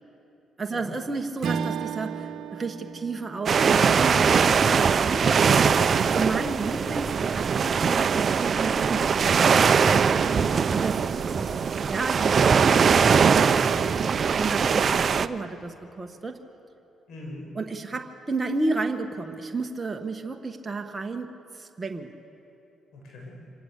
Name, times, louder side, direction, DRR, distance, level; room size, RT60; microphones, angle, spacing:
voice 1, 0.6-5.4 6.0-9.5 10.7-11.5 11.9-16.4 17.6-22.1, right 3 dB, 25° right, 3 dB, 1.2 m, -32 dB
Strum, 1.4-6.0, right 6 dB, 65° right, 0.9 m, -36 dB
sound 1, 3.5-15.3, right 6 dB, 45° right, 0.6 m, -21 dB
voice 2, 10.3-10.6 11.4-11.7 17.1-17.5 22.9-23.3, left 2 dB, 80° left, -1 dB, 7.2 m, -42 dB
26.0 x 18.5 x 8.2 m, 3.0 s
cardioid pair, 90°, 0 cm